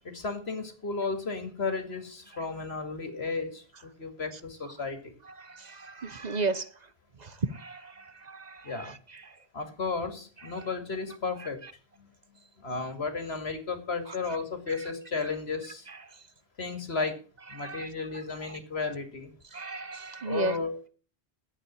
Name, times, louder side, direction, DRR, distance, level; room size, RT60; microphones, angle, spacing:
voice 1, 0.0-5.1 8.6-8.9 9.5-11.6 12.0-12.1 12.6-15.9 16.6-17.2 17.5-19.3 20.2-20.9, left 4 dB, 90° left, 2.5 m, -34 dB
voice 2, 5.8-6.6 7.6-7.8 8.3-8.4 17.6-17.9 19.5-20.5, right 3 dB, 45° right, 1.0 m, -32 dB
11.5 x 8.5 x 7.5 m
omnidirectional pair, 1.0 m